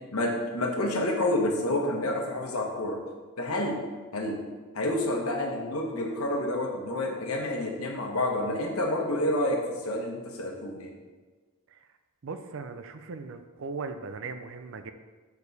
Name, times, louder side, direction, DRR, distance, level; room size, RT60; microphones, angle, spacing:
voice 1, 0.1-3.0 3.4-3.8 4.1-4.4 4.7-11.0, left 1 dB, 75° left, 1 dB, 1.1 m, -29 dB
voice 2, 12.2-14.9, right 4 dB, 60° right, 8 dB, 0.5 m, -38 dB
6.8 x 4.7 x 4.1 m, 1.3 s
head